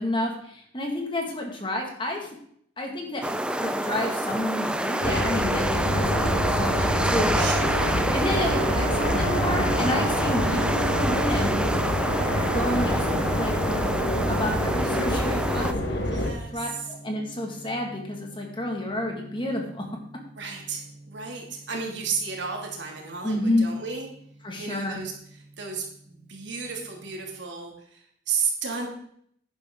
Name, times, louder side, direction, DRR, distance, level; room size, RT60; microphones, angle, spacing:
voice 1, 0.0-2.3 2.8-3.2 3.6-7.5 8.1-11.6 12.5-13.1 13.4-13.5 14.3-16.2 16.5-19.8 23.2-23.6 24.4-25.0, left 1 dB, 25° left, 1 dB, 2.1 m, -30 dB
sound 1, 3.2-15.7, right 1 dB, 5° right, 0.5 m, -28 dB
sound 2, 5.0-16.3, left 1 dB, 75° left, 1.8 m, -26 dB
voice 2, 6.6-7.0 7.3-8.1 16.1-16.8 20.4-24.1 24.6-28.9, right 5 dB, 75° right, 1 dB, 2.7 m, -33 dB
Gong, 8.3-27.3, right 3 dB, 45° right, 0.8 m, -39 dB
11.0 x 10.5 x 3.9 m, 0.65 s
head